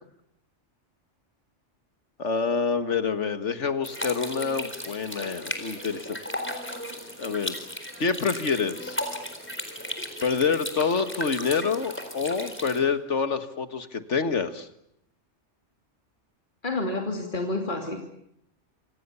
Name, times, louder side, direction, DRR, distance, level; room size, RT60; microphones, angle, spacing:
voice 1, 2.2-6.2 7.2-7.6 8.0-9.0 10.2-14.7, left 5 dB, 80° left, 10 dB, 2.0 m, -27 dB
sound 1, 3.8-12.8, left 1 dB, 10° left, 4.1 m, -36 dB
voice 2, 16.6-18.0, left 2 dB, 40° left, 2 dB, 3.0 m, -29 dB
28.0 x 26.0 x 7.0 m, 0.74 s
omnidirectional pair, 1.2 m